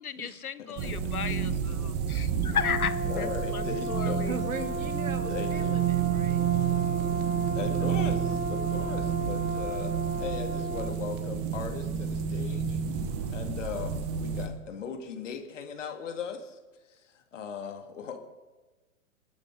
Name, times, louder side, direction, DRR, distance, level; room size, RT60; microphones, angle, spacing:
voice 1, 0.0-4.4, left 8 dB, 75° left, 15 dB, 0.7 m, -34 dB
voice 2, 0.6-0.9 3.0-4.3 5.3-5.8 7.5-12.8 13.3-16.6 16.9-18.2, left 6 dB, 55° left, 5 dB, 2.1 m, -38 dB
sound 1, 0.8-14.5, right 8 dB, 25° right, 1.2 m, -30 dB
Brass instrument, 2.5-11.0, right 1 dB, 80° right, 1.3 m, -35 dB
voice 3, 4.3-7.1, right 4 dB, 60° right, 10 dB, 1.8 m, -40 dB
27.5 x 9.7 x 3.8 m, 1.2 s
figure-of-eight pair, 115°, 45 cm